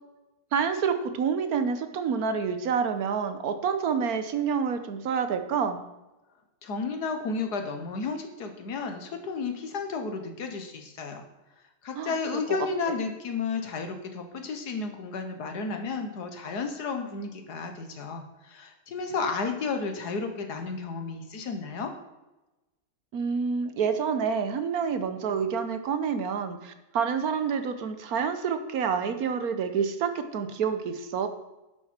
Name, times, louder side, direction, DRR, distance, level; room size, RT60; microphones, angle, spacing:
voice 1, 0.5-5.8 12.0-12.1 12.5-12.6 12.9-13.0 23.1-31.3, right 6 dB, 70° right, 9 dB, 1.3 m, -28 dB
voice 2, 6.6-11.2 11.8-21.9, left 4 dB, 90° left, 5 dB, 1.8 m, -32 dB
10.5 x 8.1 x 4.4 m, 1.0 s
omnidirectional pair, 1.7 m